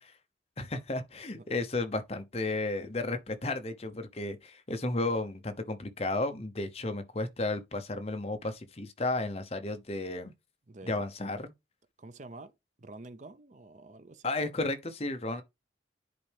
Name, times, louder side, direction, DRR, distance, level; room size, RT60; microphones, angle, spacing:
voice 1, 0.6-10.3 10.9-11.4 14.2-15.4, left 2 dB, 35° left, 0.9 m, -33 dB
voice 2, 10.7-11.1 12.0-12.5 12.8-14.3, right 2 dB, 40° right, 0.6 m, -48 dB
10.0 x 4.6 x 3.4 m
head